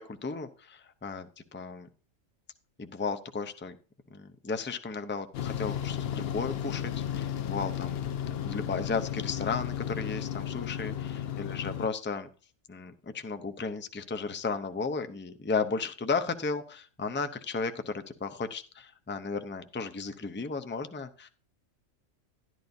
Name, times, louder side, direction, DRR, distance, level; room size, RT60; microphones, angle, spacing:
voice 1, 0.0-1.9 2.8-3.8 4.1-8.0 8.3-12.3 12.7-21.3, left 4 dB, 15° left, 8 dB, 0.3 m, -34 dB
sound 1, 5.3-11.9, left 10 dB, 60° left, 0.7 m, -34 dB
11.5 x 11.0 x 2.7 m, 0.37 s
omnidirectional pair, 1.4 m